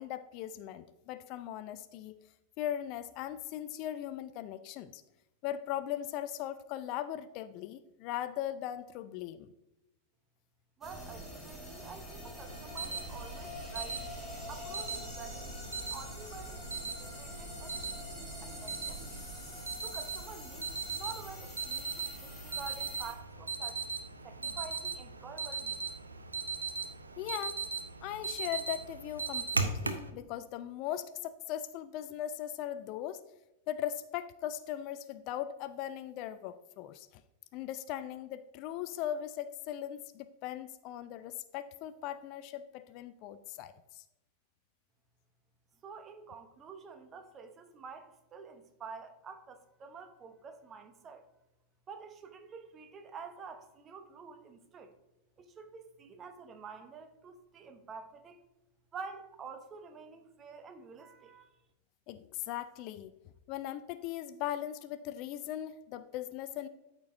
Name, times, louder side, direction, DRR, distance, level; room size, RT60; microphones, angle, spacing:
voice 1, 0.0-2.2 2.6-5.0 5.4-9.5 27.2-27.6 28.0-33.2 33.7-37.1 37.5-44.0 62.1-63.1 63.5-66.7, left 11 dB, 40° left, 13 dB, 0.3 m, -39 dB
sound 1, 10.8-23.1, left 1 dB, 5° left, 1.8 m, -45 dB
voice 2, 10.8-14.0 14.5-19.2 19.8-23.8 24.2-25.8 45.8-51.3 51.9-54.9 55.4-58.4 58.9-61.5, right 5 dB, 25° right, 8 dB, 0.8 m, -48 dB
Alarm, 12.5-30.1, right 4 dB, 80° right, 0.6 m, -39 dB
13.0 x 4.4 x 2.6 m, 0.92 s
figure-of-eight pair, 90°, 0 cm